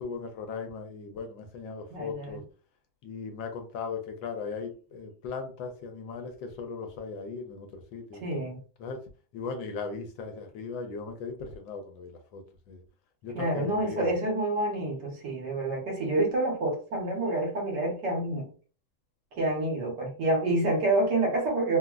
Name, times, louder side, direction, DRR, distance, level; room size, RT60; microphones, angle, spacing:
voice 1, 0.0-2.4 3.0-8.2 8.8-9.0 9.3-12.8 13.2-14.1, left 5 dB, 80° left, 1.3 m, -38 dB
voice 2, 1.9-2.4 8.2-8.6 13.3-18.5 19.4-21.8, right 2 dB, 65° right, 1.6 m, -28 dB
3.6 x 2.0 x 2.3 m
omnidirectional pair, 2.1 m